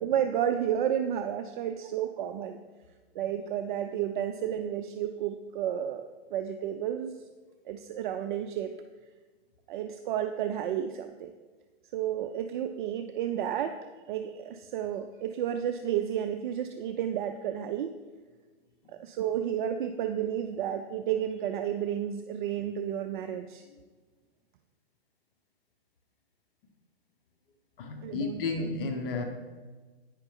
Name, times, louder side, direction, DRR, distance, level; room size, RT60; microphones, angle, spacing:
voice 1, 0.0-2.6 3.1-6.0 6.3-7.2 7.7-8.7 9.7-11.3 11.9-13.8 14.1-17.9 18.9-23.6 28.0-28.4, right 10 dB, 50° right, 7 dB, 0.4 m, -31 dB
voice 2, 27.8-29.2, left 3 dB, 55° left, 4 dB, 1.0 m, -32 dB
8.9 x 5.6 x 3.6 m, 1.4 s
hypercardioid pair, 135°, 32 cm